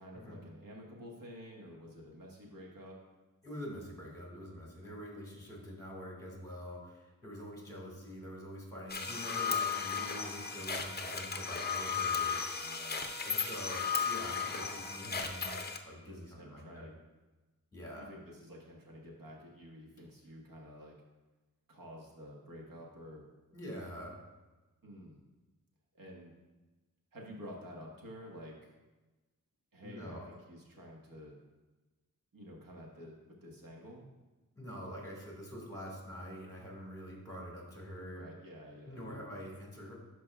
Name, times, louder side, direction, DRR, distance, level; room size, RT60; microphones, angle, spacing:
voice 1, 0.0-3.0 4.8-4.9 12.6-13.1 16.0-16.9 18.0-20.9 21.7-23.2 24.8-25.2 26.0-26.3 27.1-28.5 29.7-31.4 32.3-33.2 33.4-34.0 38.1-39.2, equal, 70° right, -1 dB, 1.4 m, -50 dB
voice 2, 3.4-12.4 13.2-16.9 17.7-18.1 23.5-24.1 29.8-30.3 34.6-38.3 38.8-39.9, equal, 10° left, -2 dB, 1.7 m, -45 dB
sound 1, 8.9-15.8, left 6 dB, 30° left, 0.5 m, -35 dB
11.5 x 4.9 x 2.3 m, 1.2 s
wide cardioid pair, 140°, 34 cm